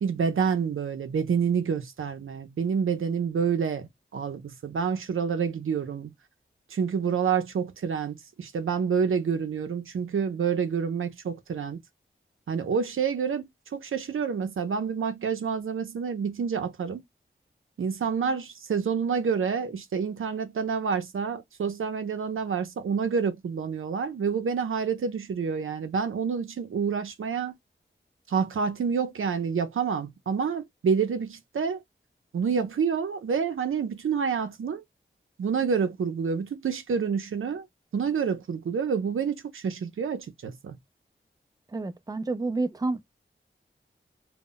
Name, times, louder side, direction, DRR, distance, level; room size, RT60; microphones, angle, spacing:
voice 1, 0.0-6.1 6.7-11.8 12.5-17.0 17.8-27.5 28.3-31.8 32.3-34.8 35.4-37.7 37.9-40.8, right 6 dB, 85° right, 0.5 m, -28 dB
voice 2, 41.7-43.0, right 3 dB, 20° right, 0.4 m, -29 dB
2.1 x 2.0 x 3.7 m
wide cardioid pair, 55°, 20 cm